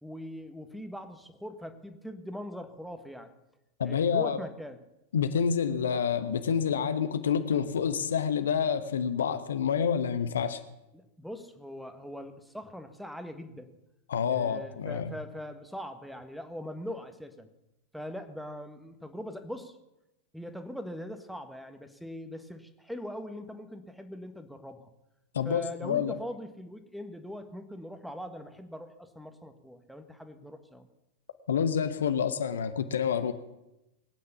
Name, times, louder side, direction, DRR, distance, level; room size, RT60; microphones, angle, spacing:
voice 1, 0.0-3.3 3.8-4.8 10.9-13.8 14.3-17.5 17.9-19.8 20.3-24.9 25.4-30.9, equal, ahead, 8 dB, 1.6 m, -41 dB
voice 2, 3.8-4.4 5.1-10.6 14.1-15.1 25.3-26.2 31.5-33.3, left 7 dB, 65° left, 10 dB, 1.1 m, -28 dB
21.5 x 9.4 x 7.1 m, 0.91 s
figure-of-eight pair, 90°, 0 cm